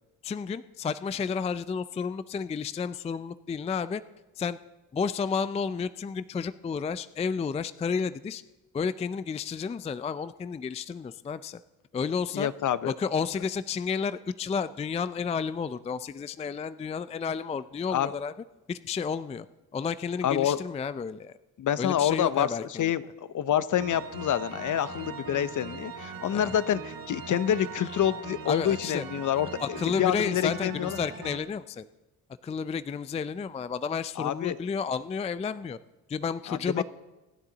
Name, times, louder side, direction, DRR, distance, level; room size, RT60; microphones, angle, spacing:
voice 1, 0.2-4.0 4.4-4.6 4.9-8.4 8.7-11.6 11.9-12.5 12.8-18.3 18.7-19.5 19.7-21.3 21.8-22.9 26.3-26.5 28.5-29.0 29.6-31.9 32.4-35.8 36.1-36.8, left 6 dB, 20° left, 15 dB, 0.3 m, -31 dB
voice 2, 12.3-12.9 17.9-18.1 20.2-20.6 21.6-22.5 22.8-23.0 23.3-31.0 34.2-34.6 36.5-36.8, left 10 dB, 50° left, 16 dB, 0.7 m, -27 dB
sound 1, 23.8-31.4, right 6 dB, 60° right, 1.6 m, -41 dB
25.5 x 9.8 x 3.9 m, 1.1 s
cardioid pair, 85°, 38 cm